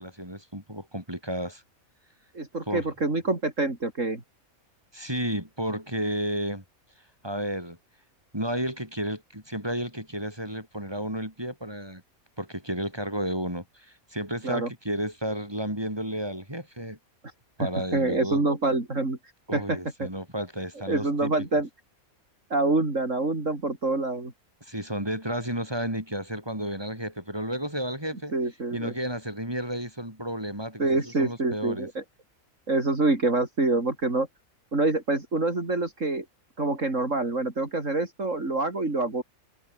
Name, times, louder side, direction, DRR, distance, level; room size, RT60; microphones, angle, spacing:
voice 1, 0.0-1.6 2.7-2.9 4.9-6.6 7.2-7.8 8.3-12.0 12.4-17.0 17.6-18.4 19.5-21.3 24.6-28.3 28.7-31.9, equal, 15° right, 7.4 m, -32 dB
voice 2, 2.3-4.2 14.4-14.7 17.9-19.2 19.5-20.1 20.9-21.7 22.5-24.3 28.3-28.9 30.8-32.0 32.7-34.3 34.7-36.2 36.6-39.2, right 2 dB, 60° right, 4.8 m, -26 dB
omnidirectional pair, 1.5 m